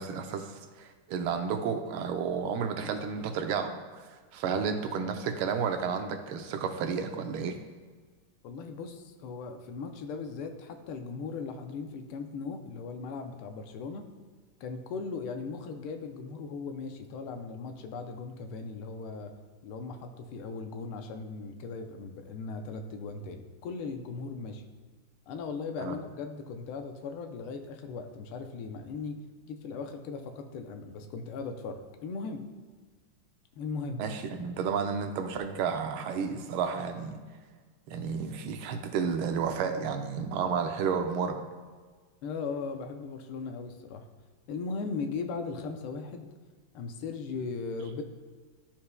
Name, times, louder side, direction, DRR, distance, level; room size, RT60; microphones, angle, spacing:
voice 1, 0.0-4.0 4.3-7.6 25.8-25.9 34.0-37.2 37.9-41.4, right 6 dB, 80° right, 6 dB, 1.4 m, -31 dB
voice 2, 8.4-14.1 14.6-19.3 19.6-24.6 25.3-32.4 33.6-34.0 42.2-44.1 44.5-46.3 46.7-48.0, left 4 dB, 80° left, 6 dB, 1.5 m, -38 dB
11.5 x 4.4 x 2.2 m, 1.5 s
omnidirectional pair, 2.4 m